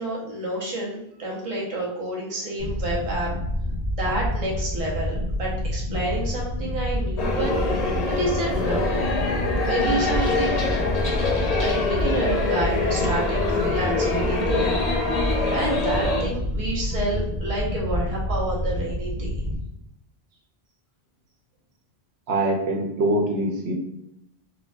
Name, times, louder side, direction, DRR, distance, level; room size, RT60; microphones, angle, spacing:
voice 1, 0.0-3.3 3.9-7.6 8.0-9.1 9.6-10.8 11.6-14.8 15.5-19.4, right 1 dB, 35° right, -4 dB, 0.9 m, -29 dB
sound 1, 2.6-19.6, equal, 60° right, 1.1 m, -28 dB
sound 2, 7.2-16.2, left 3 dB, 45° left, 0.6 m, -25 dB
voice 2, 22.3-23.8, right 1 dB, 85° right, 1 dB, 1.0 m, -23 dB
5.0 x 2.3 x 2.3 m, 0.81 s
omnidirectional pair, 1.0 m